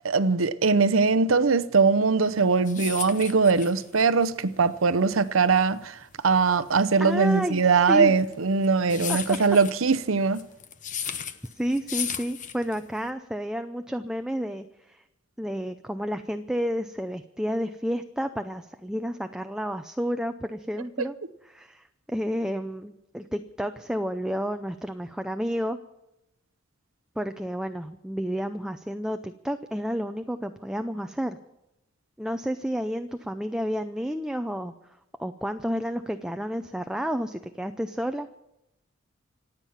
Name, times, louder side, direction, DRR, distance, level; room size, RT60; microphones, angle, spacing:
voice 1, 0.0-6.0 6.2-10.4, right 4 dB, 85° right, 0.8 m, -21 dB
sound 1, 2.3-13.1, left 8 dB, 40° left, 1.0 m, -36 dB
voice 2, 7.0-8.2 9.3-9.4 11.0-15.0 15.4-21.2 21.4-25.8 27.2-31.4 32.2-34.7 35.2-38.3, equal, 5° right, 0.5 m, -31 dB
26.5 x 9.0 x 5.7 m
head